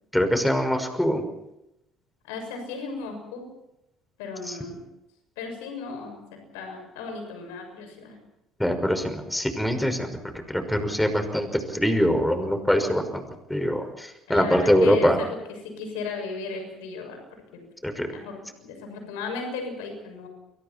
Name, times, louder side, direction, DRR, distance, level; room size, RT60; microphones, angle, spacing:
voice 1, 0.1-1.2 4.5-4.6 8.6-10.1 10.5-13.2 13.5-15.2 17.8-18.1, equal, 5° left, 7 dB, 5.7 m, -23 dB
voice 2, 2.3-3.5 4.2-4.8 5.4-8.2 14.3-15.4 15.6-17.2 17.5-17.6 18.1-20.3, left 4 dB, 80° left, 4 dB, 6.8 m, -35 dB
30.0 x 23.0 x 4.5 m, 0.88 s
hypercardioid pair, 60°, 0 cm